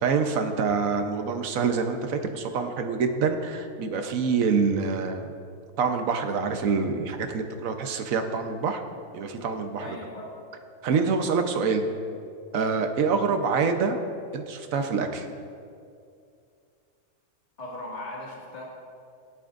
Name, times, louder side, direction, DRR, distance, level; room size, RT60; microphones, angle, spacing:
voice 1, 0.0-5.3 5.8-8.8 9.1-10.0 10.8-11.8 12.5-14.0 14.3-15.3, right 5 dB, 65° right, 6 dB, 1.2 m, -26 dB
voice 2, 9.8-10.3 17.6-18.6, left 1 dB, 25° left, -4 dB, 2.0 m, -38 dB
17.0 x 11.5 x 2.5 m, 2.4 s
omnidirectional pair, 1.6 m